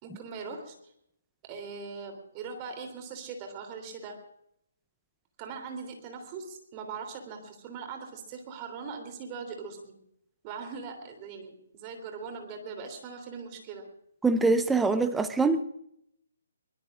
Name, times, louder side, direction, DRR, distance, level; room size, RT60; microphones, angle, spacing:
voice 1, 0.0-0.7 1.5-4.2 5.4-9.9 10.4-13.9, right 5 dB, 25° right, 4 dB, 3.3 m, -40 dB
voice 2, 14.2-15.6, right 3 dB, 5° right, 10 dB, 0.8 m, -24 dB
24.0 x 20.5 x 2.5 m, 0.74 s
figure-of-eight pair, 140°, 0 cm